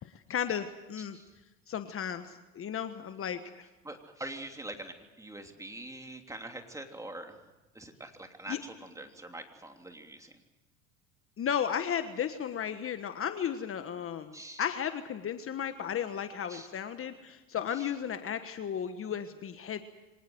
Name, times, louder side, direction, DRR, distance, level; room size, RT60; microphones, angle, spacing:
voice 1, 0.0-1.2 1.7-3.7 8.5-8.6 11.4-19.8, left 8 dB, 35° left, 9 dB, 1.4 m, -34 dB
voice 2, 3.8-7.4 7.7-10.3 14.3-14.6 16.5-16.7 17.7-17.9, right 1 dB, 10° right, 4 dB, 3.1 m, -44 dB
25.0 x 19.0 x 7.9 m, 1.1 s
supercardioid pair, 95°, 38 cm